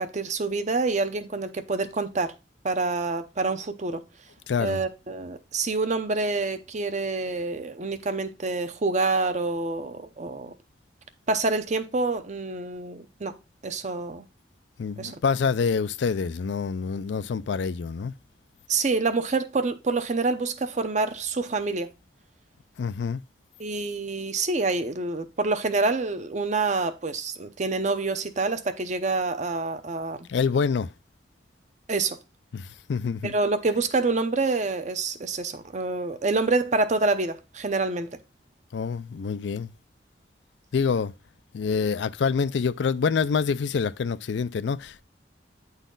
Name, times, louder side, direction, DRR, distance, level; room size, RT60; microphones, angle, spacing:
voice 1, 0.0-2.3 2.6-4.0 4.6-10.5 11.3-13.4 13.6-14.2 15.0-15.2 18.7-21.9 23.6-30.3 31.9-32.2 33.2-38.2, right 3 dB, 40° right, 0.7 m, -27 dB
voice 2, 4.5-4.8 14.8-18.1 22.8-23.2 30.3-30.9 32.5-33.3 38.7-39.7 40.7-41.1 41.5-45.0, left 5 dB, 70° left, 0.4 m, -26 dB
9.1 x 4.1 x 3.8 m
head